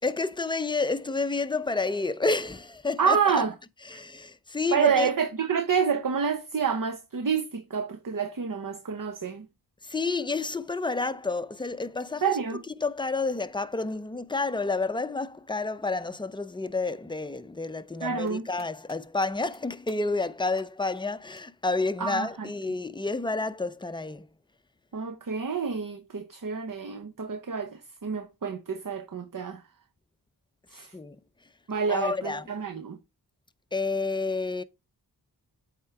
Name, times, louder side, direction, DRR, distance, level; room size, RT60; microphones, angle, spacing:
voice 1, 0.0-3.2 3.9-5.1 9.8-12.2 12.8-24.3 30.9-31.2 31.9-32.5 33.7-34.6, left 3 dB, 10° left, 0.5 m, -29 dB
voice 2, 3.0-3.5 3.9-4.0 4.7-9.5 12.2-12.6 18.0-18.5 22.0-22.5 24.9-29.6 30.7-30.9 31.7-33.0, right 6 dB, 50° right, 0.7 m, -28 dB
sound 1, 18.0-19.0 19.2-19.6 19.9-20.3 20.6-20.7 21.0-21.1 21.4-21.5 21.8-21.9 23.4-23.5, right 2 dB, 25° right, 4.4 m, -54 dB
8.4 x 3.7 x 4.4 m
wide cardioid pair, 45°, 41 cm